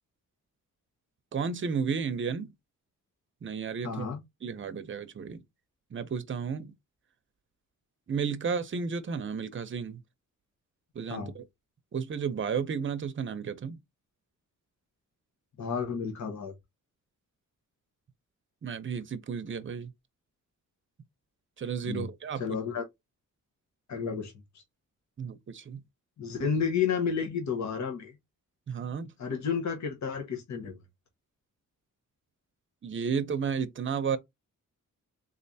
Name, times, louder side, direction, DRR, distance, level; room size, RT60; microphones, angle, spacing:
voice 1, 1.3-2.5 3.4-4.0 4.4-5.4 5.9-6.7 8.1-10.0 10.9-11.4 11.9-13.8 18.6-19.9 21.6-22.6 25.2-25.8 28.7-29.1 32.8-34.2, right 6 dB, 40° right, 0.7 m, -33 dB
voice 2, 3.8-4.2 11.1-11.3 15.6-16.5 21.8-22.1 22.4-22.8 23.9-24.3 26.2-28.1 29.2-30.8, left 6 dB, 60° left, 1.1 m, -31 dB
3.7 x 3.3 x 2.7 m
wide cardioid pair, 115°, 33 cm